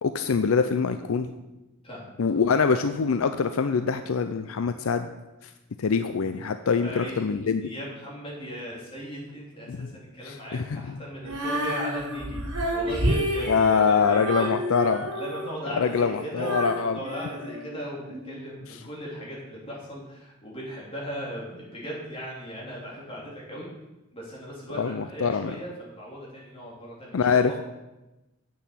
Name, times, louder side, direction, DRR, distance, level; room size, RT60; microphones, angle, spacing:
voice 1, 0.0-1.3 2.2-5.1 5.8-7.6 9.7-9.9 10.2-10.9 13.5-15.1 15.8-17.0 24.8-25.5 27.1-27.6, left 5 dB, 70° left, 9 dB, 0.5 m, -24 dB
voice 2, 1.8-2.4 6.7-7.3 7.6-12.4 12.7-14.6 15.1-23.7 24.1-27.5, equal, 25° left, -5 dB, 3.3 m, -38 dB
Female singing, 11.2-18.3, right 1 dB, 90° right, 3.8 m, -30 dB
8.1 x 7.0 x 7.5 m, 1.0 s
head